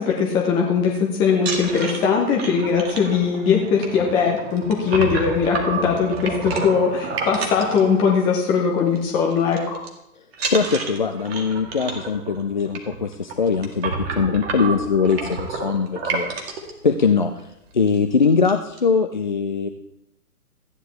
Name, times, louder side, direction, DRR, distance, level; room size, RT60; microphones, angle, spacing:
voice 1, 0.0-9.8, left 6 dB, 10° left, 0 dB, 0.7 m, -20 dB
sound 1, 1.3-8.5 8.8-9.1 9.3-9.9 10.3-16.7 17.4-17.5 17.8-18.0 18.2-18.8, right 4 dB, 40° right, 2.2 m, -30 dB
voice 2, 10.5-16.3 16.8-17.5 17.7-19.7, left 5 dB, 35° left, 6 dB, 0.4 m, -21 dB
15.0 x 10.0 x 3.4 m, 0.83 s
figure-of-eight pair, 130°, 46 cm